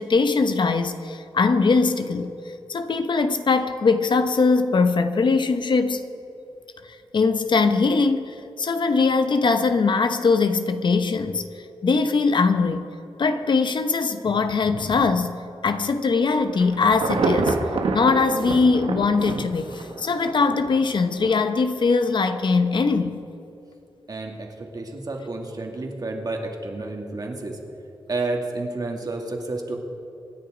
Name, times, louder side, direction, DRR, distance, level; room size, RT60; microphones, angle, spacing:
voice 1, 0.0-2.3 2.7-6.0 7.1-11.5 11.8-12.8 13.2-15.4 15.6-17.6 17.9-23.2, left 4 dB, 55° left, 0.8 m, -21 dB
Insect / Thunder / Rain, 16.4-20.7 21.2-21.3, right 3 dB, 80° right, 1.4 m, -26 dB
voice 2, 24.1-27.6 28.1-29.8, right 2 dB, 45° right, 2.3 m, -30 dB
25.5 x 10.5 x 5.0 m
wide cardioid pair, 90°, 9 cm